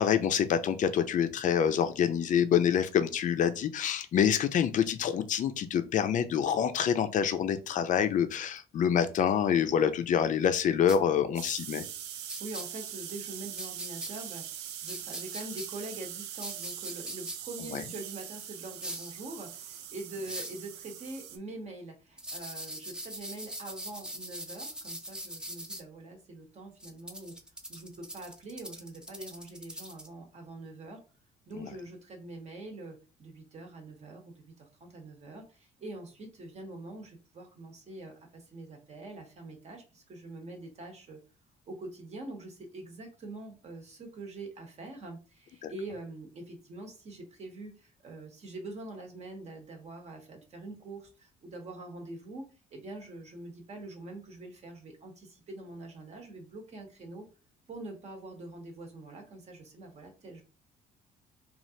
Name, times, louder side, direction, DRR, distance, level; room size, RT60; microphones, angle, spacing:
voice 1, 0.0-11.8 17.7-17.8 31.5-31.7 45.6-45.7, left 8 dB, 50° left, 10 dB, 0.5 m, -26 dB
sound 1, 10.9-11.0 12.3-12.6 13.6-14.1 14.9-15.7 16.4-17.4 18.8-19.1 20.2-20.6 22.2-25.8 26.8-30.1, right 1 dB, 5° right, 0.5 m, -41 dB
sound 2, 11.4-21.4, right 10 dB, 85° right, 0.4 m, -42 dB
voice 2, 12.2-27.4 27.7-31.0 31.5-41.2 41.7-57.3 57.7-60.4, right 2 dB, 40° right, 3 dB, 0.9 m, -44 dB
3.1 x 2.4 x 2.7 m, 0.34 s
cardioid pair, 110°, 17 cm